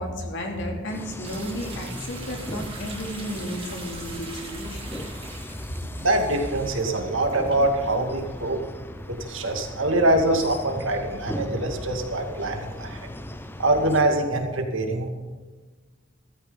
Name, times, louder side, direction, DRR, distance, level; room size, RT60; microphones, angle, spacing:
voice 1, 0.0-5.0, equal, 65° left, 1 dB, 3.0 m, -33 dB
sound 1, 0.9-14.0, left 1 dB, 10° left, 0.7 m, -38 dB
sound 2, 1.2-8.6 9.0-9.1 10.0-10.1 11.9-12.0, right 4 dB, 30° right, 2.4 m, -43 dB
voice 2, 6.0-8.6 9.1-13.0 13.6-15.1, right 1 dB, 75° right, 3 dB, 2.2 m, -24 dB
14.5 x 13.5 x 3.9 m, 1.3 s
head